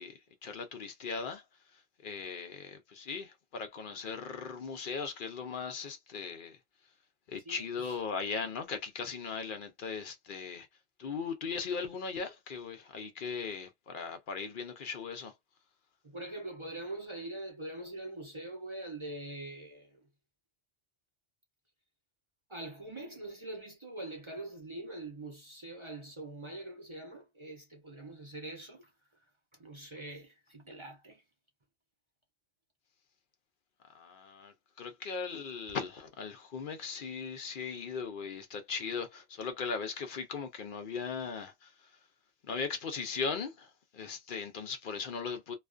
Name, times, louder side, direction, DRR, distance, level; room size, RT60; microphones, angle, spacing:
voice 1, 0.0-1.4 1.7-6.6 7.3-10.7 11.0-15.3 33.9-42.0 42.4-45.5, left 5 dB, 60° left, 0.6 m, -38 dB
voice 2, 7.5-8.0 16.0-20.0 22.5-28.9 29.6-31.2, right 2 dB, 35° right, 0.5 m, -43 dB
2.4 x 2.2 x 2.4 m
omnidirectional pair, 1.2 m